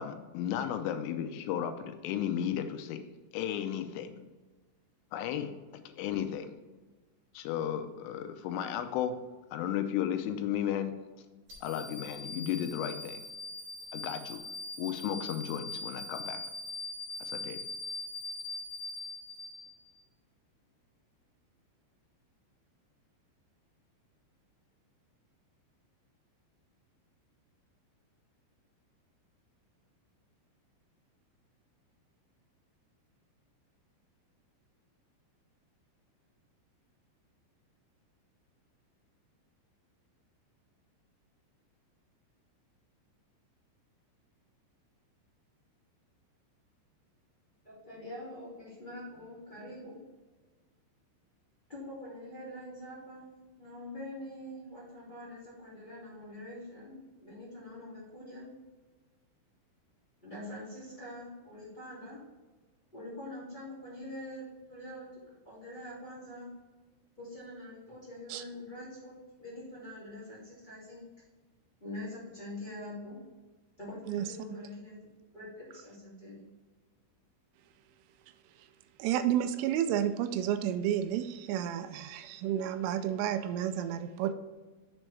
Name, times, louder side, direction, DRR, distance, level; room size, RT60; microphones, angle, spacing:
voice 1, 0.0-3.0 3.3-4.1 5.1-5.5 6.0-6.5 7.3-9.1 9.5-10.9 11.6-13.2 13.9-14.4 14.8-16.4 17.2-17.6, left 10 dB, 85° left, 8 dB, 3.3 m, -34 dB
sound 1, 11.5-20.0, left 2 dB, 40° right, 3.1 m, -41 dB
voice 2, 47.6-50.0 51.7-53.3 53.6-56.9 57.2-58.5 60.2-62.2 62.9-66.5 67.2-69.1 69.4-71.0 71.8-73.2 73.8-75.0 75.3-76.4, left 1 dB, 30° left, -9 dB, 0.9 m, -44 dB
voice 3, 74.1-74.6 78.6-78.7 79.0-84.3, right 10 dB, 85° right, 10 dB, 3.1 m, -31 dB
7.6 x 7.2 x 3.3 m, 1.2 s
omnidirectional pair, 5.6 m